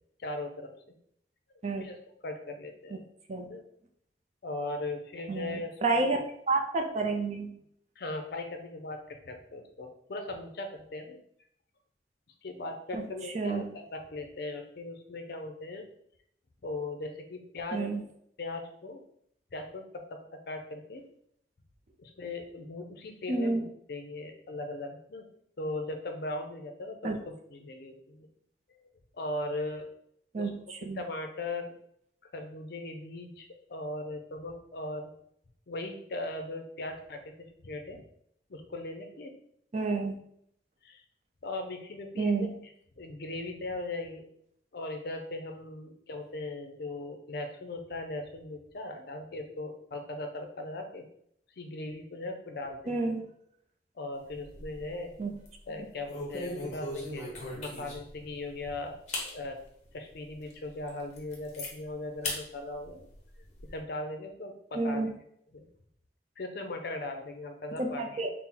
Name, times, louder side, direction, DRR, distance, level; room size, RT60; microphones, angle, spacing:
voice 1, 0.2-0.7 1.8-2.0 2.2-3.0 3.5-3.6 4.4-6.1 8.0-11.2 12.4-15.8 16.6-17.9 18.4-19.0 19.5-20.2 20.5-21.0 22.0-23.6 23.9-25.2 25.6-28.3 29.1-29.8 30.4-30.5 31.0-31.7 32.3-35.1 35.7-38.0 38.5-39.3 40.8-41.0 41.4-42.5 43.0-44.3 44.7-51.0 51.6-53.0 54.0-55.1 55.7-59.0 59.2-59.6 59.9-63.0 63.7-65.1 65.5-65.7 66.4-68.2, left 2 dB, 60° left, 5 dB, 0.5 m, -38 dB
voice 2, 5.3-6.2 6.5-7.6 12.9-13.1 13.3-13.7 17.7-18.0 23.3-23.6 27.0-27.2 30.3-31.0 39.7-40.2 42.2-42.6 52.9-53.3 55.2-55.4 64.7-65.2 67.8-68.3, right 3 dB, 40° right, 4 dB, 0.4 m, -30 dB
sound 1, 54.2-55.0 55.3-55.5 56.1-58.2 58.6-58.7 59.1-59.3 59.8-59.9 60.5-60.6 60.9-61.7 62.2-62.4 62.8-63.7, left 2 dB, 40° left, 0.9 m, -38 dB
4.3 x 2.1 x 3.8 m, 0.70 s
head